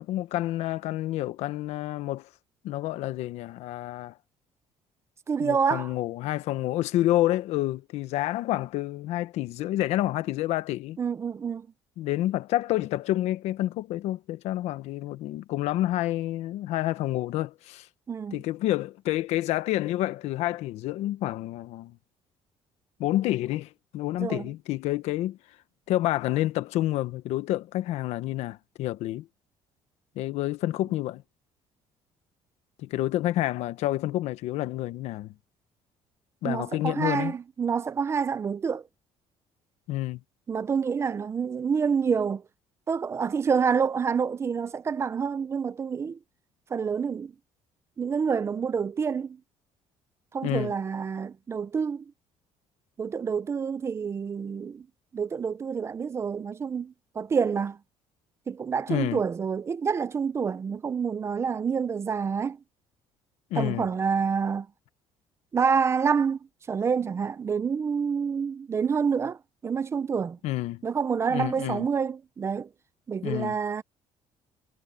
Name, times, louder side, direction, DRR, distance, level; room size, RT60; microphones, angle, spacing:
voice 1, 0.0-2.3 2.6-4.1 5.4-11.0 12.0-17.9 18.3-22.0 23.0-25.4 25.9-29.3 30.1-31.2 32.8-35.3 36.4-37.3 39.9-40.2 50.4-50.7 58.9-59.2 63.5-63.9 70.4-70.8 71.3-71.9 73.2-73.6, left 15 dB, 75° left, 1.2 m, -29 dB
voice 2, 5.3-5.9 11.0-11.7 18.1-18.4 24.2-24.5 36.4-38.8 40.5-42.4 42.9-46.2 46.7-47.3 48.0-49.4 50.3-52.0 53.0-54.9 55.1-57.8 58.5-62.6 63.5-64.7 65.5-66.4 66.7-70.4 70.8-72.7 73.1-73.8, right 6 dB, 25° right, 0.5 m, -27 dB
cardioid pair, 160°, 11 cm